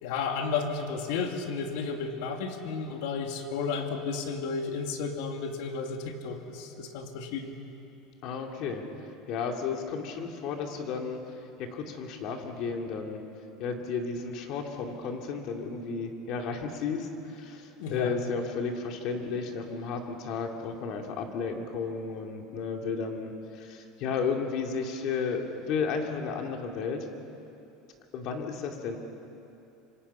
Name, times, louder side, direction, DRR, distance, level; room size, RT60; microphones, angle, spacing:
voice 1, 0.0-7.5 17.8-18.1, left 5 dB, 70° left, 4 dB, 2.4 m, -33 dB
voice 2, 8.2-13.2 13.6-27.1 28.1-29.0, left 5 dB, 50° left, 3 dB, 2.6 m, -33 dB
26.0 x 26.0 x 5.7 m, 2.8 s
cardioid pair, 160°, 0 cm